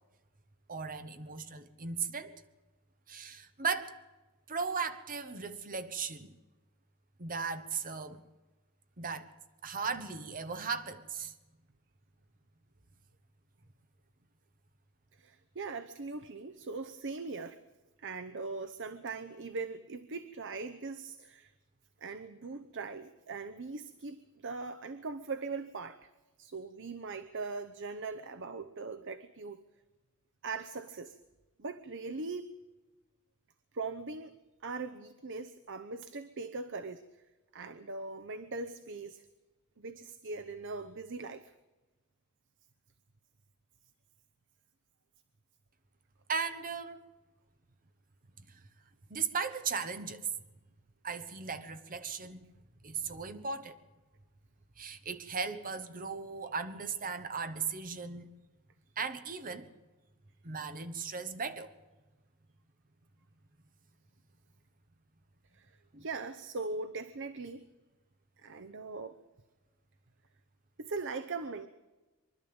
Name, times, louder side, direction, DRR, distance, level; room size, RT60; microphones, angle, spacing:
voice 1, 0.7-2.3 3.1-3.9 4.5-6.4 7.2-8.2 9.0-9.3 9.6-11.3 46.3-47.0 49.1-50.3 51.0-52.5 52.8-53.8 54.8-58.3 59.0-59.7 60.4-61.7 65.9-66.1, right 5 dB, 40° right, 9 dB, 1.3 m, -37 dB
voice 2, 15.1-17.6 18.0-21.5 22.0-26.1 26.4-29.6 30.4-31.2 31.6-32.5 33.7-34.4 34.6-37.1 37.5-39.3 39.8-41.5 65.5-67.7 68.4-69.2 70.8-71.7, right 3 dB, 60° right, 10 dB, 0.9 m, -40 dB
24.5 x 12.5 x 8.8 m, 1.1 s
head